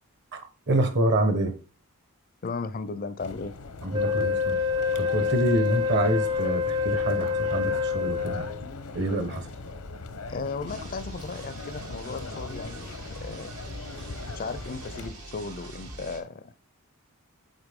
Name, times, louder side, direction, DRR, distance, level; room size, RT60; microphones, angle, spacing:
voice 1, 0.7-1.5 3.8-4.6 4.9-8.5 8.9-9.5, right 1 dB, 50° right, 1.1 m, -26 dB
voice 2, 2.4-3.5 10.3-13.5 14.3-16.5, left 4 dB, 40° left, 0.4 m, -36 dB
sound 1, 3.2-15.1, left 3 dB, 85° left, 0.8 m, -40 dB
Wind instrument woodwind instrument, 3.9-8.7, left 5 dB, 20° right, 0.4 m, -27 dB
sound 2, 10.7-16.2, right 2 dB, 80° right, 1.6 m, -43 dB
8.0 x 4.3 x 3.6 m
head